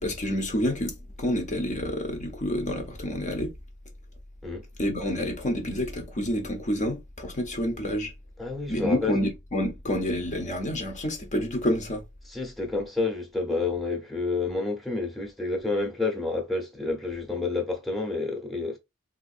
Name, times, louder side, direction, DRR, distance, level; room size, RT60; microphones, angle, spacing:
voice 1, 0.0-3.6 4.8-8.1 8.7-12.0, equal, 35° left, 0.6 m, -28 dB
voice 2, 8.4-9.1 12.3-18.8, left 3 dB, ahead, 0.8 m, -29 dB
3.6 x 2.5 x 2.5 m
head